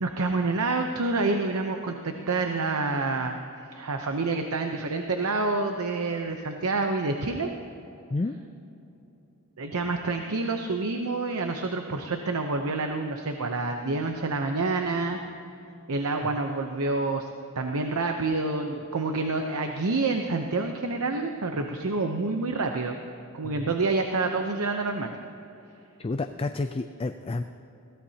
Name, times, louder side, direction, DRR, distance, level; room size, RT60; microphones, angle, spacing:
voice 1, 0.0-7.5 9.6-15.2 15.9-17.3 17.5-23.0 23.3-25.1, right 3 dB, 75° right, 4 dB, 0.8 m, -28 dB
voice 2, 26.0-27.4, left 3 dB, 25° left, 8 dB, 0.4 m, -30 dB
21.5 x 17.0 x 2.8 m, 2.9 s
head